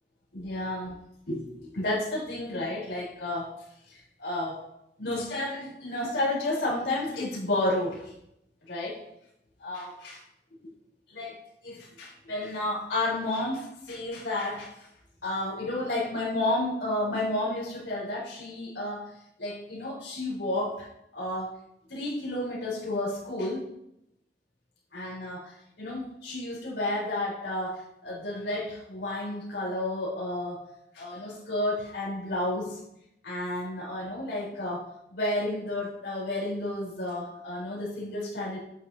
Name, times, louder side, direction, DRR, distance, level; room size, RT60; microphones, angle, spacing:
voice 1, 0.3-0.9 1.3-3.5 3.9-4.6 5.0-8.1 8.7-9.0 9.6-10.2 10.6-10.7 11.1-14.9 15.2-19.1 19.4-20.9 21.1-21.5 21.9-23.6 24.9-30.6 30.9-32.8 33.2-34.8 35.1-38.6, left 1 dB, 90° left, -6 dB, 4.2 m, -31 dB
11.5 x 9.4 x 2.9 m, 0.81 s
head